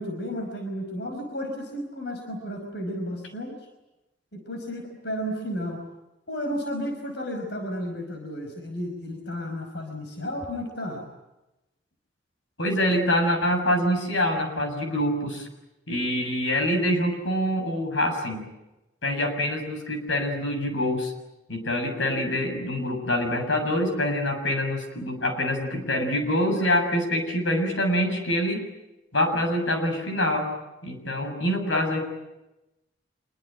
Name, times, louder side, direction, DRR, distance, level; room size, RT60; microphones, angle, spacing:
voice 1, 0.0-3.5 4.3-5.8 6.3-11.1, equal, 65° left, 4 dB, 5.3 m, -33 dB
voice 2, 12.6-15.5 15.9-18.5 19.0-21.1 21.5-28.6 29.1-30.5 30.8-32.1, left 1 dB, 85° left, 5 dB, 7.1 m, -25 dB
27.0 x 23.0 x 9.0 m, 0.96 s
head